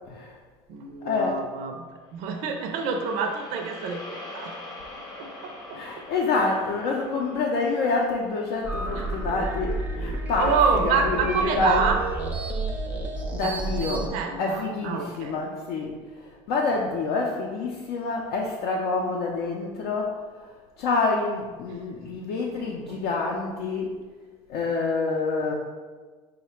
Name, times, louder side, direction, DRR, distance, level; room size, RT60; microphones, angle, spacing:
voice 1, 0.0-0.4 1.0-1.4 5.7-11.9 13.3-14.1 14.4-24.0 24.5-25.5, left 3 dB, 70° left, -2 dB, 0.5 m, -27 dB
voice 2, 0.7-4.0 4.3-4.5 5.2-5.8 8.9-9.0 10.4-12.0 13.4-15.4 21.7-21.8 22.9-23.0, right 5 dB, 65° right, 3 dB, 0.4 m, -27 dB
sound 1, 2.2-10.5, left 2 dB, 30° left, 0.7 m, -44 dB
sound 2, 8.6-14.1, right 2 dB, 10° right, 0.5 m, -30 dB
4.8 x 2.1 x 4.3 m, 1.4 s
cardioid pair, 140°, 12 cm